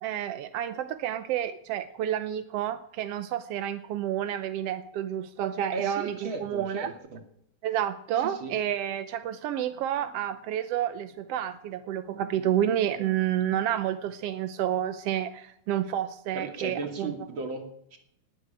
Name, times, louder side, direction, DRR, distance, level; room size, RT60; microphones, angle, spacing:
voice 1, 0.0-6.9 7.6-17.1, right 10 dB, 75° right, 10 dB, 1.5 m, -30 dB
voice 2, 5.7-7.2 8.2-8.5 16.3-18.0, right 3 dB, 45° right, 4 dB, 3.0 m, -36 dB
19.5 x 8.3 x 9.0 m, 0.75 s
omnidirectional pair, 3.5 m